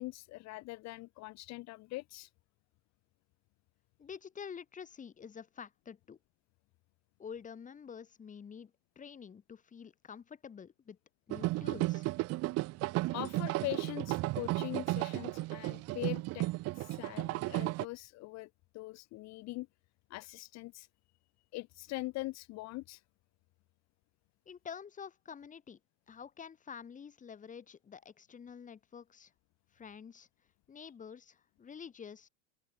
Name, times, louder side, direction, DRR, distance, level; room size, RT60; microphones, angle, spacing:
voice 1, 0.0-2.3 13.1-16.5 16.7-18.5 18.7-19.7 20.1-20.9 21.5-23.0, left 20 dB, 45° left, 1.3 m, -42 dB
voice 2, 4.0-6.2 7.2-11.0 11.3-12.1 24.5-25.8 26.1-29.3 29.7-30.3 30.7-32.3, left 7 dB, 20° left, 2.1 m, -48 dB
sound 1, 11.3-17.9, right 20 dB, 40° right, 0.8 m, -34 dB
open air
hypercardioid pair, 110°, 37 cm